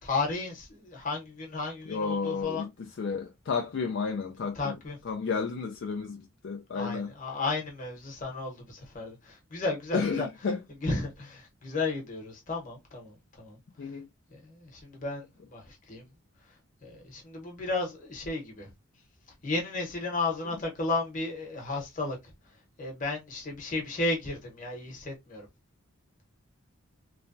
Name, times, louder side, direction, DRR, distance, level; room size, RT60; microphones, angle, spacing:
voice 1, 0.0-2.6 4.5-5.0 6.7-10.3 10.8-13.6 14.3-15.2 15.5-16.0 16.8-18.7 19.4-22.2 22.8-25.5, left 3 dB, 35° left, 1.0 m, -33 dB
voice 2, 1.9-4.7 5.0-7.1 9.9-10.6 13.8-14.1, left 5 dB, 55° left, 0.4 m, -32 dB
3.1 x 2.2 x 2.5 m
head